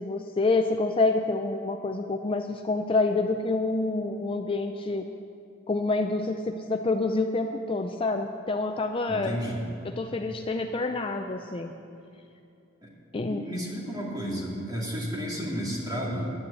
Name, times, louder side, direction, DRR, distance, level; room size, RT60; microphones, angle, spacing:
voice 1, 0.0-5.1 5.7-9.4 9.8-11.7 13.1-13.4, left 3 dB, 25° left, 5 dB, 0.4 m, -27 dB
voice 2, 9.0-9.6 12.8-12.9 13.3-16.3, equal, 20° right, -4 dB, 2.5 m, -32 dB
11.5 x 9.6 x 8.2 m, 2.6 s
head